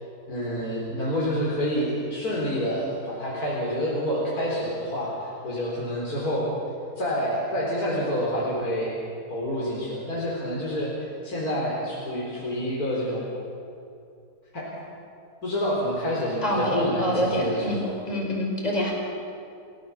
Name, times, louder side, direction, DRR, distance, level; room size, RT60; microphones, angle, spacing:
voice 1, 0.3-6.5 7.0-9.0 9.3-10.9 11.2-13.3 14.5-14.7 15.4-17.9, equal, 65° left, -6 dB, 4.7 m, -28 dB
voice 2, 16.4-17.8 18.1-18.9, equal, 25° left, -1 dB, 5.3 m, -26 dB
29.5 x 17.0 x 7.2 m, 2.5 s
omnidirectional pair, 1.7 m